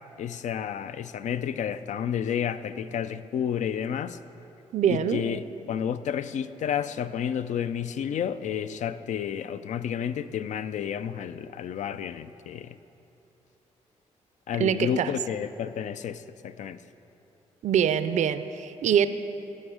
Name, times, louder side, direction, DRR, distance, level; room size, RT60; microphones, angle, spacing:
voice 1, 0.2-4.2 4.9-12.8 14.5-16.8, left 8 dB, 65° left, 13 dB, 0.4 m, -31 dB
voice 2, 4.7-5.2 14.6-15.1 17.6-19.1, right 9 dB, 65° right, 12 dB, 0.4 m, -24 dB
16.0 x 5.4 x 4.9 m, 2.9 s
supercardioid pair, 60°, 13 cm